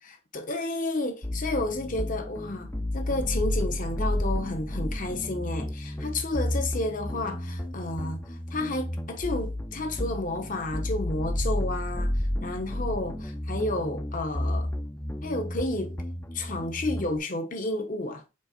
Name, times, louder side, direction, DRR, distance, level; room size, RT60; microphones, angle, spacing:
voice 1, 0.0-12.1 12.4-14.7 15.2-16.0 16.3-18.2, left 2 dB, 40° left, 0.8 m, -31 dB
sound 1, 1.2-17.2, left 1 dB, 10° left, 0.4 m, -32 dB
5.4 x 4.0 x 2.4 m
head